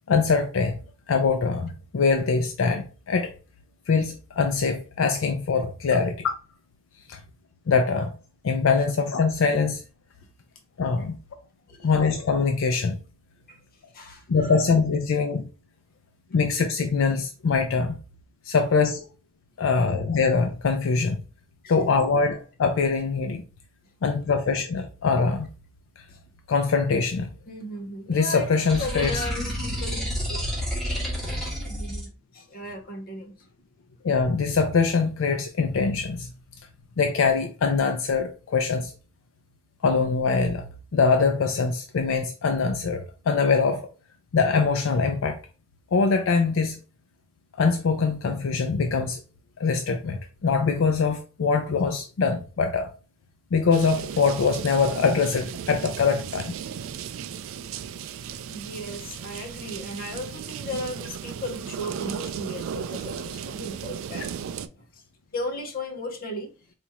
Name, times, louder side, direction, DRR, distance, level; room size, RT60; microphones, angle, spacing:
voice 1, 0.1-0.8 1.1-3.3 3.9-6.3 7.1-7.2 7.7-8.1 8.4-9.8 10.8-11.2 11.8-13.0 14.3-15.5 16.3-18.0 18.5-19.1 19.6-21.2 21.7-23.4 24.0-25.5 26.5-27.3 28.1-29.2 34.0-36.3 37.0-38.9 39.8-40.6 40.9-43.9 44.3-45.4 45.9-46.8 47.6-49.2 49.6-52.9 53.5-56.5, left 4 dB, 75° left, 0.4 m, -23 dB
voice 2, 13.9-14.6 21.6-21.7 26.1-26.2 27.5-30.4 31.6-33.5 58.5-64.3 64.8-65.0 65.3-66.5, left 1 dB, 45° left, 0.8 m, -36 dB
sound 1, 28.7-32.1, equal, ahead, 1.2 m, -29 dB
sound 2, 53.7-64.7, right 8 dB, 75° right, 0.3 m, -36 dB
4.1 x 2.4 x 2.9 m
head